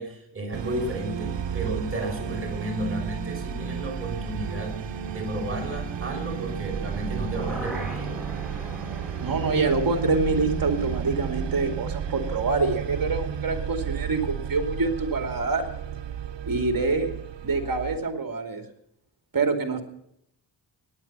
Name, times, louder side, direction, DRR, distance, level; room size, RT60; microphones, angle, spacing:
voice 1, 0.0-8.2, right 1 dB, 30° right, 0 dB, 5.7 m, -33 dB
sound 1, 0.5-18.0, right 8 dB, 65° right, 1.1 m, -32 dB
sound 2, 6.8-12.7 13.1-13.2, right 1 dB, ahead, 5.2 m, -41 dB
voice 2, 9.2-15.7 16.5-17.1 17.4-18.6 19.3-19.8, right 3 dB, 45° right, 6 dB, 2.8 m, -26 dB
18.5 x 10.0 x 5.6 m, 0.76 s
wide cardioid pair, 105°, 46 cm